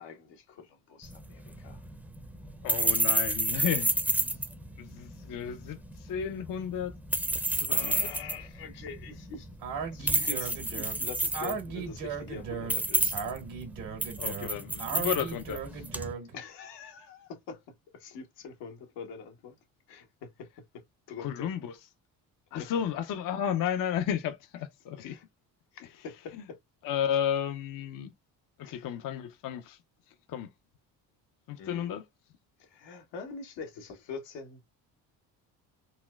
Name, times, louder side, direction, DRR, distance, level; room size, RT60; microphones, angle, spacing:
voice 1, 0.0-1.8 7.7-9.5 9.8-13.2 16.3-17.6 17.9-19.5 19.9-20.8 21.1-21.5 22.6-22.7 25.0-25.2 25.7-26.6 28.6-28.9 31.6-32.0 32.6-34.7, left 5 dB, 75° left, 1.0 m, -44 dB
sound 1, 1.0-16.1, right 1 dB, 5° right, 0.5 m, -31 dB
voice 2, 2.6-3.9 4.2-4.4 4.8-6.9 7.5-8.1 14.2-15.8 21.2-21.7 22.5-25.2 26.8-28.1 28.6-29.8 30.3-30.5 31.5-32.1, left 9 dB, 50° left, 0.5 m, -33 dB
Speech, 9.6-16.4, right 6 dB, 80° right, 1.5 m, -37 dB
4.1 x 2.1 x 2.2 m
supercardioid pair, 70°, 42 cm